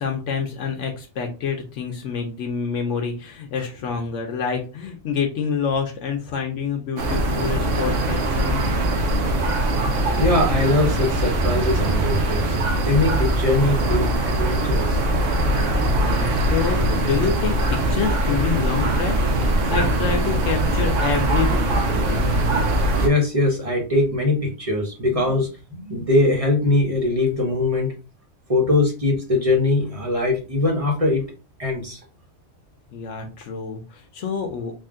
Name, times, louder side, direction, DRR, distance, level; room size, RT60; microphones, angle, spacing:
voice 1, 0.0-8.7 15.8-22.3 32.9-34.7, left 6 dB, 75° left, 3 dB, 1.0 m, -27 dB
sound 1, 7.0-23.1, right 1 dB, 85° right, 1.1 m, -21 dB
voice 2, 10.1-15.0 19.6-19.7 23.0-27.9 28.5-31.2 31.6-32.0, left 2 dB, 30° right, 0 dB, 1.0 m, -22 dB
3.6 x 2.4 x 3.6 m, 0.32 s
omnidirectional pair, 1.2 m